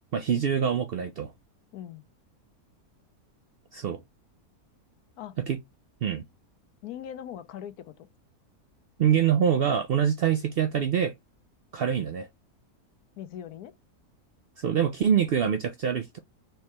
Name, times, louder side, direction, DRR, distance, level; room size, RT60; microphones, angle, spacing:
voice 1, 0.1-1.3 3.7-4.0 5.5-5.6 6.0-6.2 9.0-11.1 11.7-12.3 14.6-16.2, right 8 dB, 80° right, 0.5 m, -25 dB
voice 2, 1.7-2.0 5.2-5.4 6.8-8.1 13.2-13.7, left 10 dB, 80° left, 1.2 m, -40 dB
4.6 x 3.3 x 3.0 m
omnidirectional pair, 1.6 m